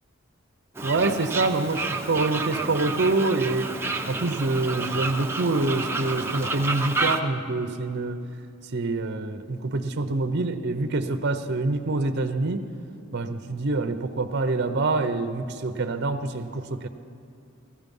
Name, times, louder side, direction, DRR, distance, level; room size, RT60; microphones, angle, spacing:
Fowl, 0.8-7.2, right 3 dB, 10° right, 0.8 m, -30 dB
voice 1, 0.8-3.7 4.1-8.2 8.7-12.6 13.1-16.9, right 3 dB, 55° right, 8 dB, 0.7 m, -26 dB
16.0 x 15.0 x 5.4 m, 2.5 s
head